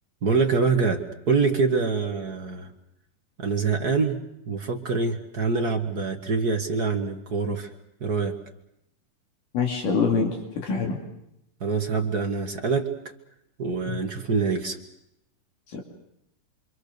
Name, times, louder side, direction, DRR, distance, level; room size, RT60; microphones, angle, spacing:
voice 1, 0.2-2.7 3.4-4.2 4.5-7.7 8.0-8.4 11.6-12.9 13.6-14.8, right 4 dB, 40° right, 3 dB, 1.4 m, -25 dB
voice 2, 9.5-11.0 13.9-14.0 15.7-15.8, left 5 dB, 70° left, 1 dB, 4.2 m, -25 dB
27.0 x 25.5 x 6.8 m, 0.82 s
omnidirectional pair, 3.9 m